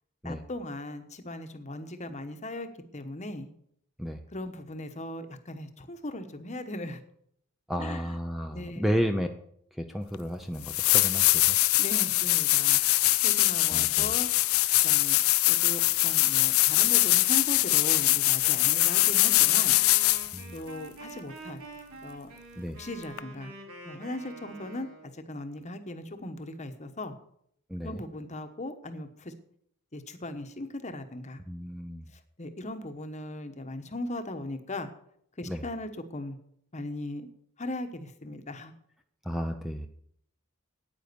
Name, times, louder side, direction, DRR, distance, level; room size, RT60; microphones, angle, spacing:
voice 1, 0.2-2.7 2.9-3.5 4.3-7.0 7.8-8.2 8.5-8.9 11.8-12.8 13.2-14.3 14.7-15.2 15.5-19.8 20.5-21.6 22.0-22.3 22.8-23.5 23.8-24.9 25.1-27.1 27.8-29.4 29.9-31.4 32.1-34.9 35.4-36.4 36.7-37.3 37.6-38.7, left 1 dB, 35° left, 8 dB, 1.1 m, -38 dB
voice 2, 7.7-9.3 9.7-11.6 13.7-14.1 20.3-20.6 22.6-22.8 27.7-28.0 31.5-32.1 35.5-35.6 39.2-39.9, equal, ahead, 5 dB, 0.6 m, -32 dB
sound 1, 10.1-10.2 10.6-20.4 23.2-23.3, left 18 dB, 75° left, 0.5 m, -23 dB
Wind instrument woodwind instrument, 18.4-25.1, right 2 dB, 75° right, 3.6 m, -46 dB
9.4 x 9.1 x 6.9 m, 0.68 s
head